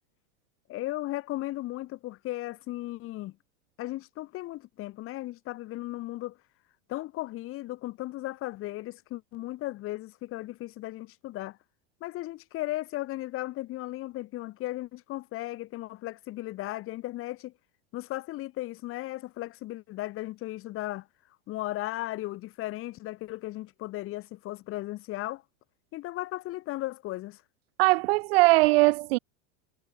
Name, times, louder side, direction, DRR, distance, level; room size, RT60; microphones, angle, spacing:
voice 1, 0.7-3.3 3.8-6.4 6.9-11.6 12.0-17.5 17.9-21.1 21.5-25.4 25.9-27.4, left 17 dB, 35° left, 5.1 m, -36 dB
voice 2, 27.8-29.2, right 23 dB, 55° right, 0.5 m, -20 dB
supercardioid pair, 155°, 36 cm